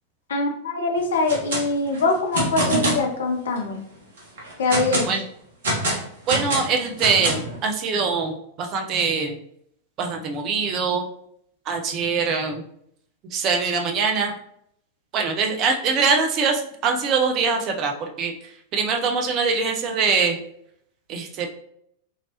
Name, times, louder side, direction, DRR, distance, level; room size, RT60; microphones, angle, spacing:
voice 1, 0.3-3.8 4.6-5.1, left 3 dB, 65° left, 3 dB, 0.6 m, -23 dB
sound 1, 1.1-1.6 1.9-3.1 3.6-3.7 4.2-5.1 5.6-7.6, right 1 dB, 60° right, 1.0 m, -25 dB
voice 2, 6.3-9.4 10.0-11.1 11.7-12.6 13.3-14.3 15.1-18.3 18.7-20.4 21.1-21.5, right 5 dB, 35° right, 3 dB, 0.5 m, -23 dB
2.9 x 2.8 x 2.9 m, 0.70 s
figure-of-eight pair, 90°, 0 cm